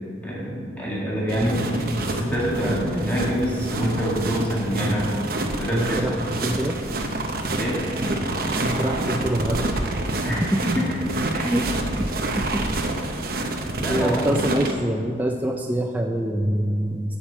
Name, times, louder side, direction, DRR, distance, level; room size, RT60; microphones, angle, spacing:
voice 1, 0.2-1.6 2.1-5.1 5.5-6.2 7.5-7.8 10.2-10.9 11.3-11.5 13.8-14.3, equal, 10° left, -6 dB, 2.1 m, -26 dB
sound 1, 1.3-14.7, right 2 dB, 50° right, 0.8 m, -27 dB
voice 2, 5.7-7.0 8.6-9.7 10.1-10.6 11.3-11.7 12.0-12.7 13.8-17.2, right 1 dB, 10° right, 2 dB, 0.3 m, -26 dB
8.8 x 5.5 x 7.0 m, 2.3 s
head